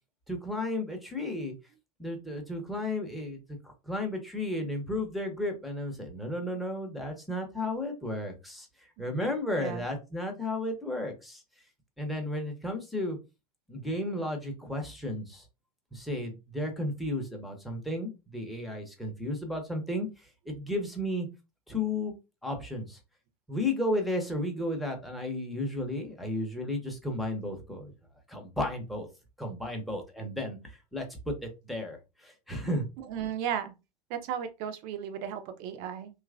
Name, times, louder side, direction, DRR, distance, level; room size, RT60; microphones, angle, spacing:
voice 1, 0.3-1.5 2.0-8.7 9.0-11.4 12.0-13.2 13.7-15.4 15.9-21.3 21.7-22.1 22.4-23.0 23.5-27.9 28.3-29.1 29.4-32.9, left 1 dB, ahead, 0.7 m, -33 dB
voice 2, 33.1-33.7 34.1-36.1, right 9 dB, 45° right, 0.6 m, -34 dB
3.0 x 2.3 x 2.4 m
figure-of-eight pair, 85°, 20 cm